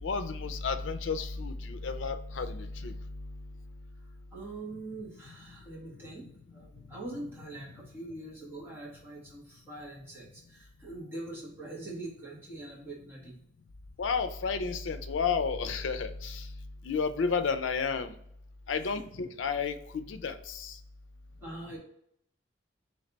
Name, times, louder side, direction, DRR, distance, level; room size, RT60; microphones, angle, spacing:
voice 1, 0.0-3.0 14.0-16.5 16.8-18.1 18.7-20.7, left 5 dB, 85° left, 9 dB, 0.4 m, -32 dB
voice 2, 4.3-13.4 18.8-19.0 21.4-21.8, right 2 dB, 10° right, -5 dB, 1.4 m, -43 dB
3.2 x 3.2 x 3.9 m, 0.70 s
head